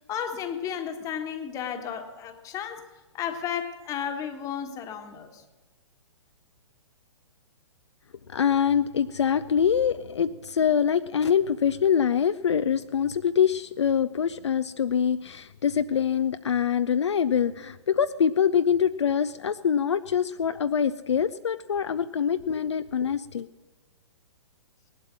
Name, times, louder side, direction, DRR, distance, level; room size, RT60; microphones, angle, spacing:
voice 1, 0.1-2.8 3.1-5.4, left 8 dB, 20° left, 7 dB, 1.4 m, -33 dB
voice 2, 8.3-23.5, left 8 dB, 65° left, 11 dB, 0.5 m, -24 dB
18.5 x 11.5 x 6.3 m, 1.2 s
figure-of-eight pair, 120°, 16 cm